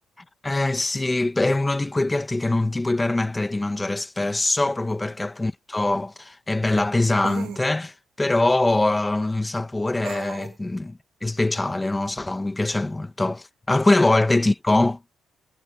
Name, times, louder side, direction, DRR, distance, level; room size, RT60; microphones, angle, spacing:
voice 1, 0.4-15.0, left 2 dB, 15° left, 1.5 m, -23 dB
sound 1, 4.9-5.0 7.2-7.7 10.0-10.6, right 12 dB, 85° right, 2.6 m, -37 dB
cardioid pair, 90°, 0 cm